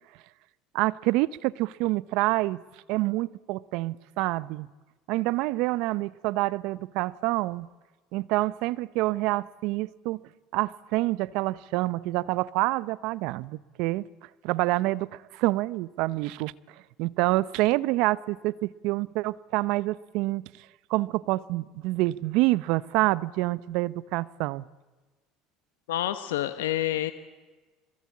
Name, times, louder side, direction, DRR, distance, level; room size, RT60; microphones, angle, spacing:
voice 1, 0.7-2.6 2.9-4.7 5.1-7.7 8.1-10.2 10.5-14.0 14.4-15.1 15.3-16.5 17.0-20.4 20.9-24.7, right 19 dB, 70° right, 19 dB, 0.8 m, -27 dB
voice 2, 25.9-27.1, left 13 dB, 85° left, 9 dB, 1.2 m, -28 dB
29.5 x 21.5 x 8.6 m, 1.2 s
hypercardioid pair, 80°, 0 cm